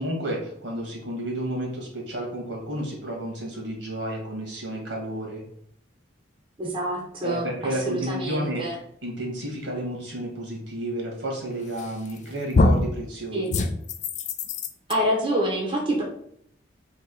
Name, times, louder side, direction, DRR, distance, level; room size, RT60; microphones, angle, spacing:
voice 1, 0.0-5.4 7.2-8.7 9.0-13.6, right 1 dB, 75° right, -1 dB, 1.6 m, -31 dB
voice 2, 6.6-8.7 13.3-13.5 14.9-16.0, right 1 dB, 30° right, -3 dB, 0.8 m, -27 dB
sound 1, 11.8-12.2 12.5-13.0 13.5-14.9, left 2 dB, 40° left, 0.3 m, -23 dB
3.5 x 2.9 x 4.3 m, 0.69 s
head